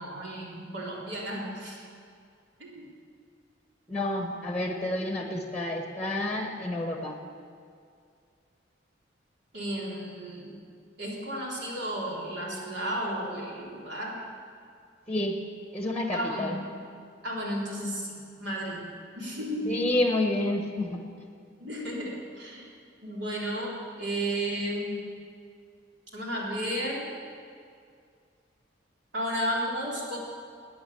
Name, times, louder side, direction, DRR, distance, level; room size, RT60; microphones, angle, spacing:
voice 1, 0.0-1.8 2.6-2.8 9.5-10.6 11.0-14.2 16.1-16.5 17.2-18.9 19.2-19.7 21.6-22.6 23.0-25.0 26.1-27.0 29.1-30.2, equal, 65° right, -3 dB, 3.8 m, -33 dB
voice 2, 3.9-7.2 15.1-15.4 15.7-16.6 19.7-21.0, left 1 dB, 5° left, 3 dB, 1.3 m, -29 dB
19.0 x 9.4 x 7.0 m, 2.3 s
head